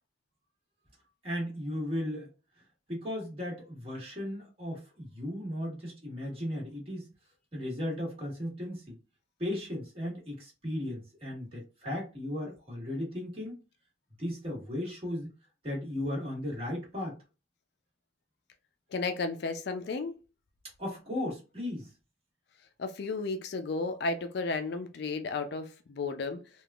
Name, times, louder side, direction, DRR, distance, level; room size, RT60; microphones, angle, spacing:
voice 1, 1.2-2.3 2.9-7.1 7.5-9.0 9.4-13.6 14.2-15.3 15.6-17.1 20.8-21.9, left 1 dB, 30° right, 1.5 m, -36 dB
voice 2, 18.9-20.1 22.8-26.5, left 3 dB, 60° left, 0.4 m, -33 dB
3.4 x 2.4 x 2.3 m
head